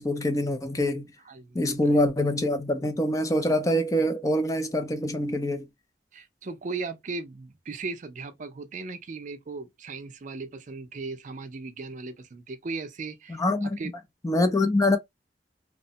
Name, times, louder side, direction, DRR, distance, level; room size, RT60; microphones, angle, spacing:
voice 1, 0.0-1.1 1.5-5.7 13.4-13.8 14.2-15.0, left 1 dB, 20° left, 0.4 m, -25 dB
voice 2, 1.3-2.0 6.1-13.9, right 3 dB, 45° right, 0.4 m, -37 dB
3.0 x 2.1 x 2.7 m
head